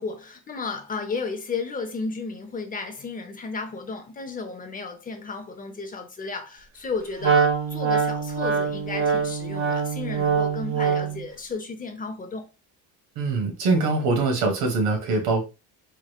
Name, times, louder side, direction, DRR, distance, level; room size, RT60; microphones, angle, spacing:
voice 1, 0.0-12.5, left 4 dB, 25° left, 0.6 m, -33 dB
Wind instrument woodwind instrument, 7.2-11.3, right 6 dB, 50° right, 1.3 m, -24 dB
voice 2, 13.1-15.4, right 3 dB, 85° right, 1.6 m, -23 dB
4.4 x 3.1 x 2.3 m
cardioid pair, 150°, 36 cm